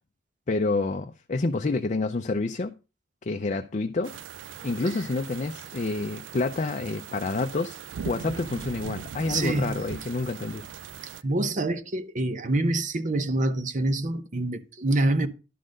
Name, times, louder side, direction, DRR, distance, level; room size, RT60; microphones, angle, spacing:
voice 1, 0.5-2.7 3.2-4.2 4.6-7.8 8.0-10.7, left 3 dB, 40° left, 0.5 m, -28 dB
sound 1, 4.0-11.2, right 7 dB, 85° right, 0.4 m, -40 dB
voice 2, 9.3-9.8 11.2-15.3, right 2 dB, 45° right, 0.8 m, -26 dB
11.0 x 4.0 x 6.4 m
head